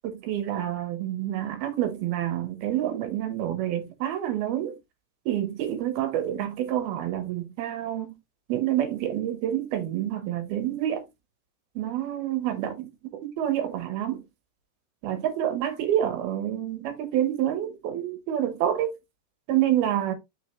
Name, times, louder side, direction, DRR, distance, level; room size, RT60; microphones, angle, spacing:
voice 1, 0.0-4.7 5.3-8.2 8.5-11.1 11.8-12.9 13.2-14.2 15.0-18.9 19.5-20.1, right 11 dB, 70° right, 3.0 m, -28 dB
6.5 x 6.4 x 3.1 m
omnidirectional pair, 4.8 m